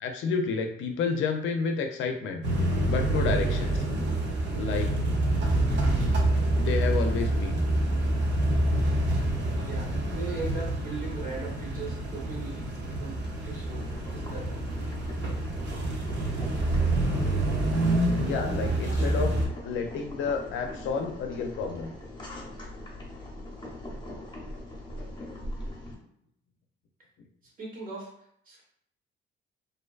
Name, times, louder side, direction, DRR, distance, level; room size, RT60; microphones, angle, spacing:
voice 1, 0.0-3.8 4.5-4.9 6.6-7.6 18.2-19.4 19.6-21.9, left 5 dB, 75° left, 5 dB, 0.4 m, -30 dB
sound 1, 2.4-19.5, right 1 dB, 65° right, 0.7 m, -27 dB
voice 2, 9.6-13.8 14.1-14.6 27.6-28.1 28.5-28.6, right 3 dB, 45° right, -3 dB, 1.1 m, -39 dB
Boiling, 13.2-25.9, left 1 dB, 25° left, 0.8 m, -42 dB
2.5 x 2.2 x 2.3 m, 0.69 s
cardioid pair, 90°, 20 cm